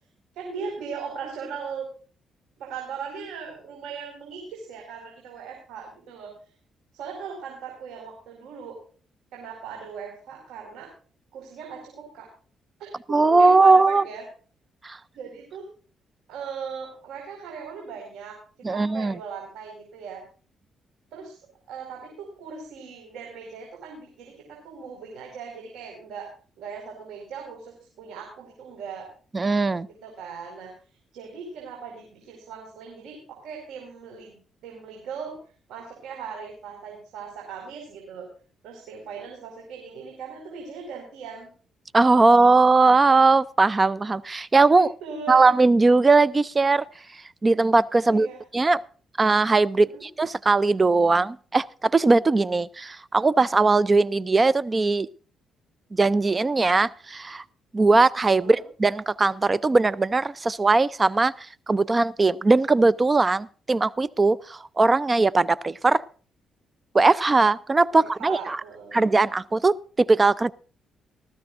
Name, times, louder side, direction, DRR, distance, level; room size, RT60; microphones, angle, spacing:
voice 1, 0.3-1.9 2.6-6.3 6.9-8.8 9.3-10.9 11.3-12.3 12.8-14.2 15.1-15.7 16.3-18.4 18.7-20.2 21.1-21.4 21.7-26.3 26.6-29.1 29.8-30.7 31.1-35.4 35.7-38.3 38.6-41.5 42.2-42.3 44.7-45.5 48.0-48.4 49.7-50.0 58.4-58.6 67.9-69.0, right 6 dB, 85° right, 1 dB, 4.9 m, -39 dB
voice 2, 13.1-14.0 14.8-15.0 18.6-19.2 29.3-29.9 41.9-44.9 45.3-46.8 47.4-48.3 48.5-48.8 49.2-55.1 56.0-57.4 57.7-66.0 66.9-68.6 68.9-70.5, right 3 dB, 25° right, 19 dB, 0.5 m, -20 dB
19.5 x 14.5 x 2.6 m, 0.40 s
cardioid pair, 90°, 0 cm